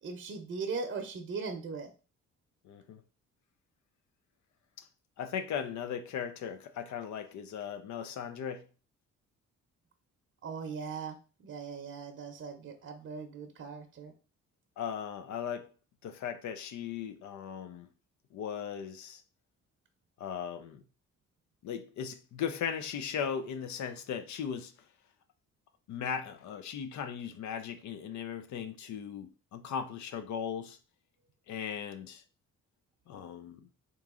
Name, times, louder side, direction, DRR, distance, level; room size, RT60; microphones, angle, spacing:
voice 1, 0.0-1.9 10.4-11.2 11.4-14.1, right 4 dB, 45° right, 0.7 m, -39 dB
voice 2, 2.6-3.0 4.8-4.9 5.2-8.7 14.8-15.7 16.0-17.9 18.3-19.2 20.2-20.8 21.6-24.7 25.9-30.8 31.5-32.2 33.1-33.7, left 7 dB, 70° left, 0.5 m, -38 dB
3.7 x 3.0 x 3.6 m
cardioid pair, 90°, 30 cm